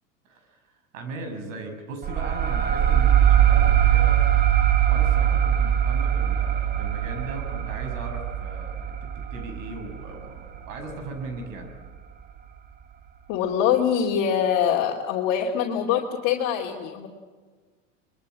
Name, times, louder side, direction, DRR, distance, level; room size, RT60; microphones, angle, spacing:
voice 1, 0.2-4.2 4.9-11.7, right 2 dB, 75° right, 5 dB, 6.1 m, -38 dB
sound 1, 2.0-11.3, right 10 dB, 25° right, 1.5 m, -21 dB
voice 2, 13.3-17.1, left 8 dB, 55° left, -1 dB, 2.8 m, -24 dB
24.0 x 22.0 x 7.6 m, 1.4 s
hypercardioid pair, 100°, 39 cm